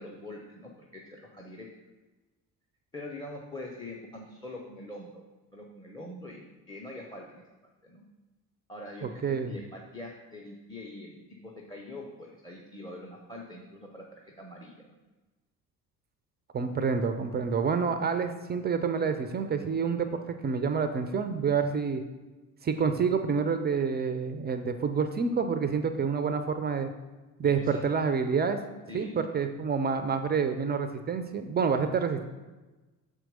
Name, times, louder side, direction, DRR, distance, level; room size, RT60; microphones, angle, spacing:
voice 1, 0.0-1.7 2.9-5.2 5.5-7.4 7.8-8.0 8.7-14.9 27.4-27.8 28.9-29.1, left 1 dB, 10° left, 0 dB, 0.7 m, -44 dB
voice 2, 9.0-9.5 16.5-22.0 22.6-26.9 27.4-28.6 28.9-32.2, right 5 dB, 20° right, 8 dB, 0.4 m, -28 dB
6.2 x 4.5 x 5.1 m, 1.2 s
figure-of-eight pair, 50°, 48 cm